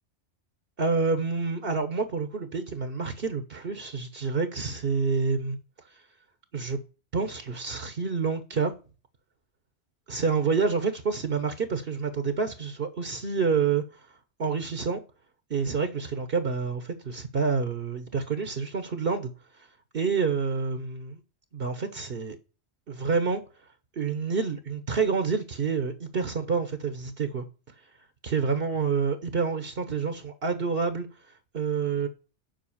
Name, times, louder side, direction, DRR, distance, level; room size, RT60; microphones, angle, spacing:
voice 1, 0.8-5.6 5.9-6.0 6.5-6.8 7.1-8.7 10.1-14.1 14.4-15.0 15.5-19.7 19.9-21.2 21.5-22.4 22.9-23.4 24.0-27.4 28.2-32.1, right 5 dB, 55° right, 1.2 m, -28 dB
7.8 x 5.9 x 7.1 m
omnidirectional pair, 1.1 m